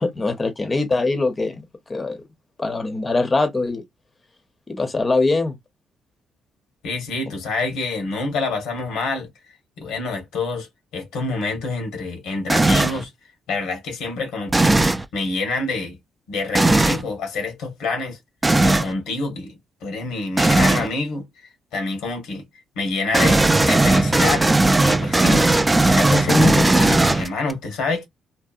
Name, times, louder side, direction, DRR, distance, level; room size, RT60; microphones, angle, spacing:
voice 1, 0.0-1.6 1.9-2.2 2.6-3.8 4.7-5.6, left 3 dB, 25° left, 0.6 m, -22 dB
voice 2, 6.8-9.3 9.8-10.7 10.9-13.1 13.5-14.7 15.1-16.0 16.3-18.2 18.6-21.3 21.7-22.5 22.7-24.5 24.8-25.5 25.9-28.0, left 3 dB, 90° left, 1.0 m, -26 dB
sound 1, 12.5-13.0 14.5-15.0 16.5-17.0 18.4-18.9 20.4-20.9 23.1-27.5, right 2 dB, 15° right, 0.3 m, -17 dB
2.7 x 2.0 x 2.4 m
cardioid pair, 90°, 0 cm